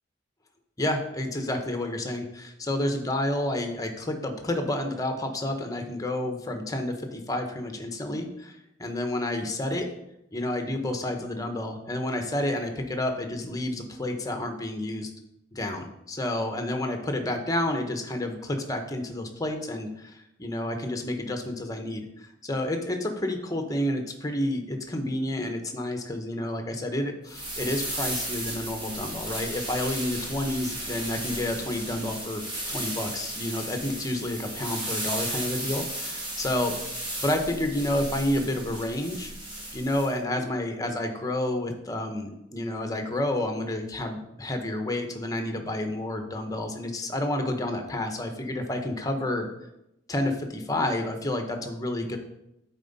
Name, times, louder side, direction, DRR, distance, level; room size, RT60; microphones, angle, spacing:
voice 1, 0.8-9.9 10.3-15.1 15.5-32.4 32.7-39.3 39.7-49.5 50.1-52.2, left 1 dB, 20° left, 5 dB, 0.9 m, -30 dB
sound 1, 27.3-40.1, right 1 dB, 25° right, 1.8 m, -35 dB
9.0 x 4.3 x 4.1 m, 0.85 s
head